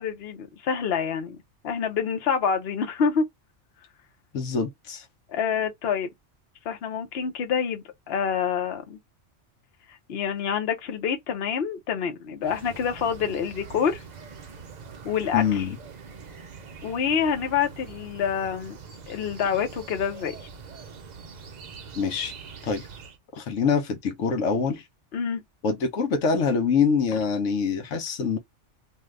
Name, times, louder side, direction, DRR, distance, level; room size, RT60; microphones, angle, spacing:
voice 1, 0.0-1.4 1.6-3.2 5.3-6.1 6.6-9.0 10.1-14.0 15.0-15.7 16.8-18.8 19.1-20.4 25.1-25.4, left 7 dB, 60° left, 1.0 m, -27 dB
voice 2, 4.3-5.1 15.3-15.8 21.9-22.3 22.6-22.9 23.3-24.8 25.6-28.4, left 5 dB, 85° left, 1.1 m, -25 dB
sound 1, 12.4-23.2, right 5 dB, 50° right, 0.6 m, -44 dB
2.7 x 2.4 x 3.2 m
omnidirectional pair, 1.3 m